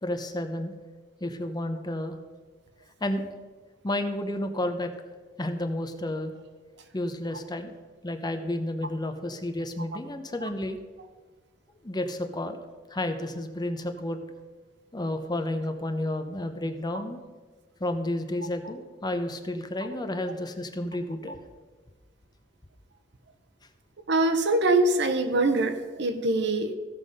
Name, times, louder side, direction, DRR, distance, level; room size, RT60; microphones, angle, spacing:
voice 1, 0.0-0.7 1.2-2.2 3.0-3.2 3.8-4.9 5.4-6.3 6.9-7.7 8.0-10.8 11.8-12.6 12.9-14.2 14.9-17.2 17.8-21.4, left 1 dB, 20° left, 7 dB, 0.8 m, -31 dB
voice 2, 24.1-26.7, right 2 dB, 65° right, 8 dB, 0.9 m, -23 dB
15.5 x 5.8 x 5.2 m, 1.4 s
head